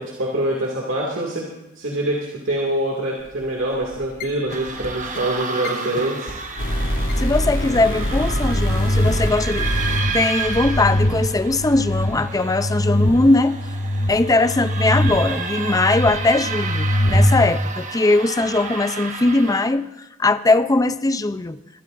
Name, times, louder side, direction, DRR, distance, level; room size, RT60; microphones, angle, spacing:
voice 1, 0.0-1.5 1.8-6.3, right 1 dB, 65° right, -2 dB, 2.3 m, -25 dB
sound 1, 3.2-3.4 3.7-4.2 4.5-4.9 5.1-5.2 5.6-5.7 6.0-6.1 6.3-6.4 6.6-12.0, equal, 65° left, 3.2 m, -25 dB
sound 2, 4.5-19.7, right 4 dB, 35° right, 1.3 m, -31 dB
voice 2, 7.2-9.7 10.1-13.6 14.1-21.6, left 2 dB, 15° left, 12 dB, 0.5 m, -20 dB
sound 3, 8.4-17.5, left 1 dB, 50° left, 1.7 m, -23 dB
23.0 x 14.0 x 2.6 m, 0.95 s
head